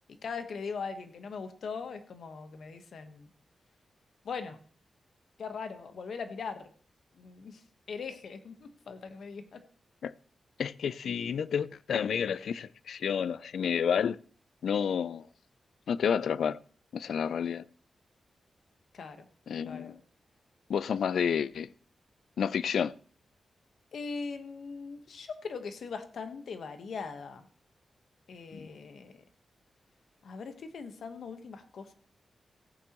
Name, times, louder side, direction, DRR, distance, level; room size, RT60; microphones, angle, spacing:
voice 1, 0.2-3.3 4.2-4.6 5.4-6.7 7.1-7.6 7.9-9.6 18.9-19.3 19.7-20.0 23.9-27.5 28.3-29.2 30.2-31.9, left 5 dB, 70° left, 1.2 m, -40 dB
voice 2, 10.6-14.2 14.6-15.2 15.9-16.6 16.9-17.6 19.5-20.0 20.7-21.7 22.4-22.9 28.5-28.7, left 7 dB, 90° left, 0.4 m, -30 dB
15.5 x 8.8 x 3.0 m
wide cardioid pair, 130°, 0 cm